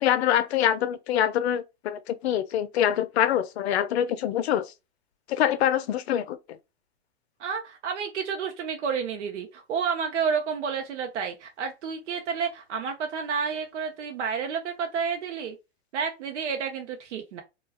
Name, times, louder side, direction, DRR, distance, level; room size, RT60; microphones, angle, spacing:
voice 1, 0.0-4.7 5.3-6.4, left 10 dB, 65° left, 0.5 m, -25 dB
voice 2, 7.4-15.6 15.9-17.4, right 6 dB, 80° right, 0.7 m, -30 dB
2.3 x 2.1 x 3.3 m
hypercardioid pair, 140°, 34 cm